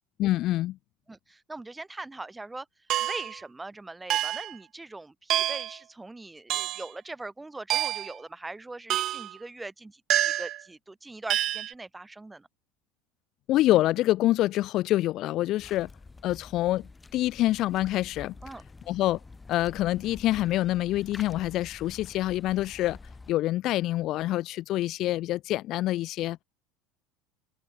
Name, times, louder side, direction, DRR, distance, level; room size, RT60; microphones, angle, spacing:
voice 1, 0.2-0.8 13.5-15.9 16.2-18.3 18.9-19.2 19.5-23.0 23.3-26.4, left 15 dB, 50° left, 0.5 m, -26 dB
voice 2, 1.1-2.7 3.0-12.5 18.4-18.6, right 2 dB, 10° right, 3.9 m, -41 dB
sound 1, 2.9-3.4 4.1-4.5 5.3-5.8 6.5-6.9 7.7-8.2 8.9-9.3 10.1-10.6 11.3-11.7, right 13 dB, 50° right, 0.8 m, -27 dB
sound 2, 15.6-23.3, left 3 dB, 15° left, 5.1 m, -48 dB
figure-of-eight pair, 70°, 0 cm